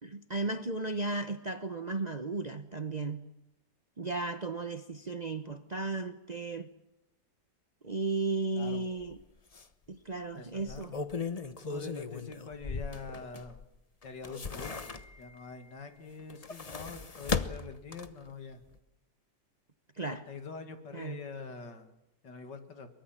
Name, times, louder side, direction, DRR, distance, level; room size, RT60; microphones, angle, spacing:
voice 1, 0.0-3.3 4.0-6.7 7.8-9.2 9.9-11.0 19.9-20.2 20.9-21.2, right 3 dB, 35° right, 0.7 m, -35 dB
sound 1, 9.0-9.1 9.5-9.6 10.6-13.6 14.0-15.4 16.2-18.3 18.7-18.8, left 4 dB, 30° left, 0.8 m, -37 dB
voice 2, 10.3-11.0 11.7-13.6 14.0-18.6 20.1-21.9 22.2-22.9, left 4 dB, 85° left, 2.9 m, -45 dB
23.5 x 23.0 x 7.4 m
omnidirectional pair, 1.9 m